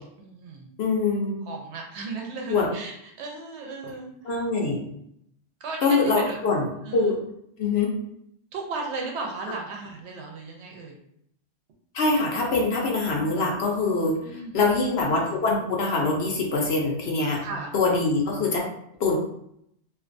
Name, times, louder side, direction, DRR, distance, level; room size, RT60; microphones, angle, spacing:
voice 1, 0.2-0.7 1.5-4.4 5.6-6.4 6.8-7.2 8.5-11.0 14.2-14.9 17.4-17.7, right 3 dB, 70° right, 1 dB, 0.8 m, -36 dB
voice 2, 0.8-1.3 2.5-2.7 4.3-4.8 5.8-6.7 6.9-7.2 7.6-7.9 11.9-14.1 14.5-17.4 17.7-18.6 19.0-19.2, left 3 dB, 65° left, -1 dB, 0.8 m, -23 dB
2.5 x 2.2 x 2.5 m, 0.73 s
omnidirectional pair, 1.2 m